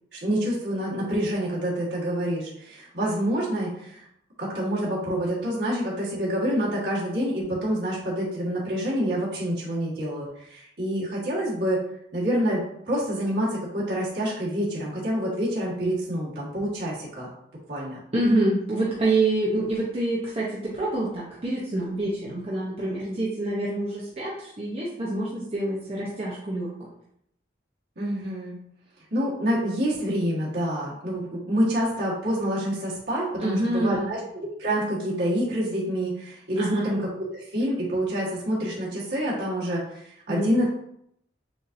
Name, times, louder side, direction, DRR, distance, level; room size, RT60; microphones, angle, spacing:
voice 1, 0.1-4.0 4.4-11.8 12.1-17.3 17.7-18.0 28.0-28.5 29.1-34.2 34.6-40.7, equal, 60° right, -7 dB, 1.5 m, -27 dB
voice 2, 18.1-26.7 33.4-34.1 36.6-36.9 40.3-40.7, right 2 dB, 30° right, -6 dB, 0.7 m, -26 dB
7.0 x 2.7 x 2.6 m, 0.73 s
head